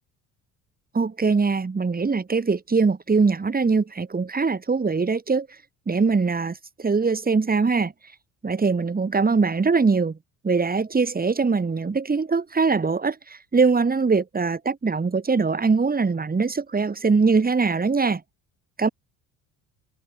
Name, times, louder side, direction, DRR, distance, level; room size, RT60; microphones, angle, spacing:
voice 1, 0.9-5.5 5.9-7.9 8.4-10.2 10.4-18.2 18.8-18.9, right 4 dB, 20° right, 3.0 m, -22 dB
figure-of-eight pair, 55°, 45 cm